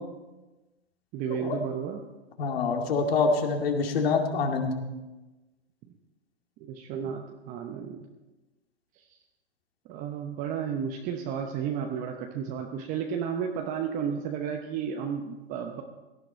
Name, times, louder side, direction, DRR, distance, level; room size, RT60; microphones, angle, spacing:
voice 1, 1.1-2.0 6.6-8.1 9.0-9.1 9.9-15.8, right 7 dB, 25° right, 3 dB, 0.9 m, -32 dB
voice 2, 2.4-4.7, left 4 dB, 60° left, 3 dB, 2.4 m, -25 dB
17.0 x 11.0 x 4.5 m, 1.1 s
hypercardioid pair, 140°, 33 cm